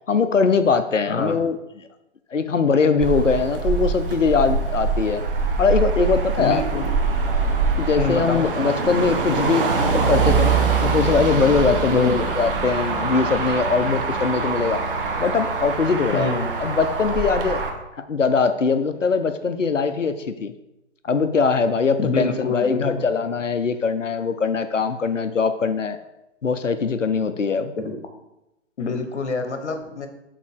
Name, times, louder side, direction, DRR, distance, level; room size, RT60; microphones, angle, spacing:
voice 1, 0.1-1.6 2.3-5.2 5.6-6.6 7.8-14.8 15.2-16.3 16.6-17.6 17.9-20.5 21.0-26.0 26.4-27.7, left 5 dB, 90° left, 10 dB, 0.6 m, -21 dB
Motor vehicle (road), 3.0-17.7, right 4 dB, 45° right, 1.0 m, -23 dB
voice 2, 6.4-6.9 7.9-8.7 11.9-12.2 16.1-16.5 22.0-22.8 27.8-27.9 28.8-30.1, left 4 dB, 65° left, 7 dB, 1.2 m, -26 dB
6.6 x 3.9 x 4.7 m, 0.90 s
figure-of-eight pair, 125°, 37 cm